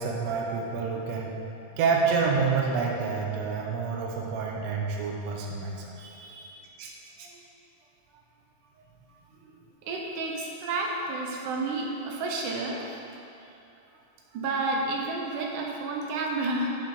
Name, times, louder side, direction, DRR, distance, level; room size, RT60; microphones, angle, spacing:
voice 1, 0.0-1.3 1.8-6.5, right 5 dB, 70° right, -1 dB, 2.0 m, -28 dB
voice 2, 9.8-13.0 14.3-16.7, right 2 dB, 85° right, -1 dB, 2.5 m, -31 dB
7.7 x 7.1 x 5.4 m, 2.8 s
omnidirectional pair, 3.5 m